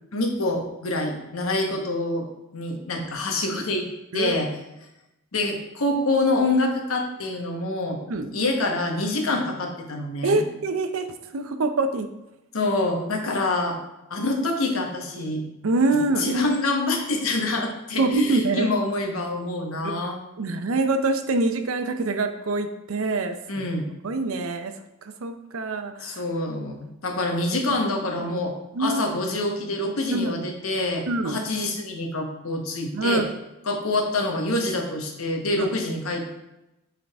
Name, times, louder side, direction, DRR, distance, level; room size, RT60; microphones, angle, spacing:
voice 1, 0.1-2.3 2.5-3.9 4.1-4.5 5.3-8.0 8.3-10.4 12.5-13.8 14.1-15.4 16.2-20.2 23.5-23.9 26.0-28.5 28.8-33.2 33.7-36.3, left 2 dB, 90° left, 2 dB, 1.1 m, -26 dB
voice 2, 10.2-11.1 11.3-12.1 15.6-16.3 17.9-18.7 19.8-19.9 20.4-23.7 24.0-24.7 25.0-26.2 28.7-29.0 30.1-30.4 31.1-31.4 32.9-33.3 35.6-35.7, right 2 dB, 80° right, 8 dB, 0.6 m, -25 dB
7.2 x 3.9 x 3.4 m, 0.93 s
head